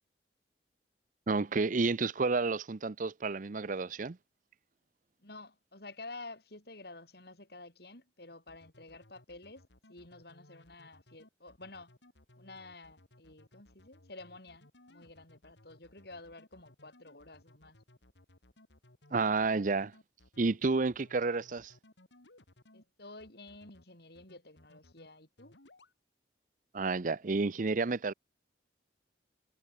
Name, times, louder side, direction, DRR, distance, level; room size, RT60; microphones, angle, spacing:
voice 1, 1.3-4.2 19.1-19.9 20.4-21.7 26.7-28.1, right 3 dB, 45° right, 0.6 m, -30 dB
voice 2, 5.2-9.6 9.9-11.9 12.4-17.8 22.7-25.5, left 2 dB, 60° left, 6.7 m, -50 dB
sound 1, 8.5-22.8 23.2-23.8 24.2-25.1 25.4-25.9, left 1 dB, 85° left, 3.1 m, -61 dB
head